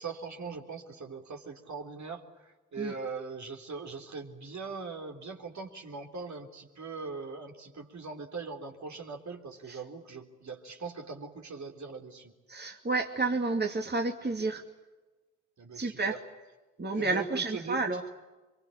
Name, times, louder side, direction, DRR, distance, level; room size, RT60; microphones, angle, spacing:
voice 1, 0.0-12.3 15.6-16.2 16.9-17.9, right 4 dB, 55° right, 3 dB, 3.8 m, -41 dB
voice 2, 12.5-14.6 15.7-16.2 16.8-18.0, right 3 dB, 30° right, 3 dB, 2.6 m, -30 dB
24.5 x 23.5 x 8.7 m, 1.2 s
hypercardioid pair, 45°, 34 cm